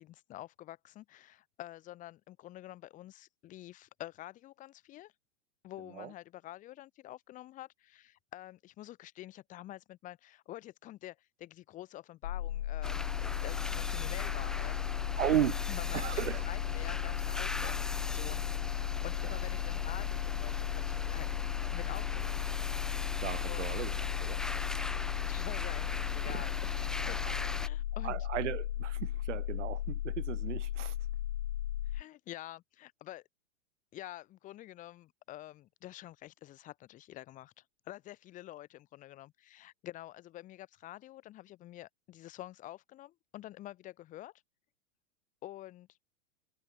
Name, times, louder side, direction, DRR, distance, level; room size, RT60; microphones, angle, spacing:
voice 1, 0.0-5.1 5.6-14.9 15.7-21.3 21.7-22.5 23.4-23.8 25.2-28.3 31.9-33.2 33.9-37.5 37.9-44.3 45.4-45.9, left 15 dB, 20° left, 5.3 m, -48 dB
sound 1, 12.2-32.0, left 12 dB, 75° left, 2.7 m, -35 dB
sound 2, 12.8-27.7, left 2 dB, ahead, 0.7 m, -40 dB
voice 2, 15.2-15.6 15.9-16.4 17.6-17.7 23.2-23.9 24.2-24.4 26.3-26.4 27.3-27.4 28.0-31.0, right 12 dB, 80° right, 1.9 m, -35 dB
supercardioid pair, 175°, 36 cm